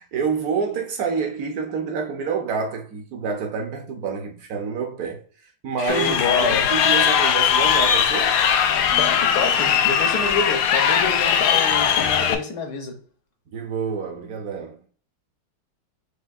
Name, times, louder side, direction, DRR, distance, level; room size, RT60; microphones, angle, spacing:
voice 1, 0.0-5.2 5.6-8.4 13.5-14.8, right 5 dB, 60° right, 1.1 m, -27 dB
voice 2, 5.8-6.7 9.0-13.0, left 5 dB, 60° left, 1.3 m, -27 dB
Crowd, 5.9-12.3, left 8 dB, 85° left, 1.3 m, -19 dB
6.3 x 2.6 x 2.4 m
omnidirectional pair, 2.0 m